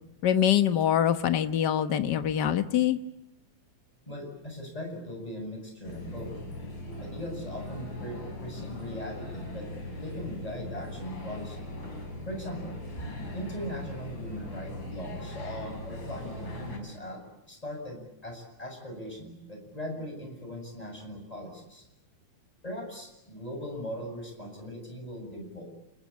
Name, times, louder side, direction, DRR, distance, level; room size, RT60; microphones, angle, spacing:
voice 1, 0.2-3.0, left 10 dB, 55° left, 10 dB, 1.2 m, -24 dB
voice 2, 4.1-6.4 7.0-9.7 10.0-11.6 12.3-21.9 22.6-25.6, equal, 10° left, 3 dB, 7.3 m, -39 dB
sound 1, 5.8-16.8, left 1 dB, 35° left, 6.2 m, -40 dB
30.0 x 20.5 x 8.5 m, 0.88 s
omnidirectional pair, 3.5 m